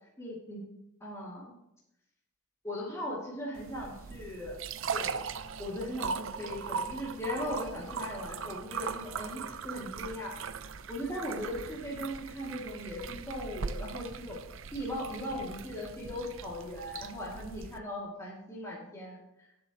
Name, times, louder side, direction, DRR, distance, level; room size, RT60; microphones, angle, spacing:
voice 1, 0.2-0.6 1.0-1.5 2.6-4.6 4.9-5.3 5.6-10.3 10.9-14.4 14.7-19.2, left 1 dB, 15° left, -6 dB, 2.6 m, -38 dB
sound 1, 3.6-17.8, right 5 dB, 65° right, 0.6 m, -39 dB
19.0 x 7.9 x 3.1 m, 0.84 s
head